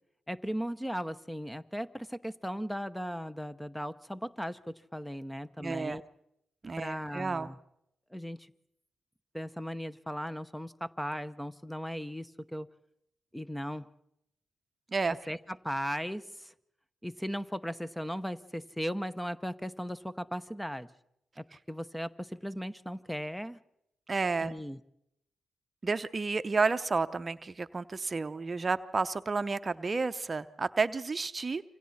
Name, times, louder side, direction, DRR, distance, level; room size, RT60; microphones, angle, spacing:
voice 1, 0.3-6.0 6.8-7.6 8.1-8.5 9.3-12.7 13.3-13.9 15.3-16.5 17.0-20.9 21.4-23.6 24.4-24.8, equal, 5° left, 14 dB, 0.9 m, -37 dB
voice 2, 5.6-6.0 6.6-7.5 14.9-15.2 24.1-24.5 25.8-31.6, right 4 dB, 40° right, 11 dB, 0.7 m, -31 dB
27.0 x 25.0 x 4.3 m, 0.80 s
hypercardioid pair, 40°, 0 cm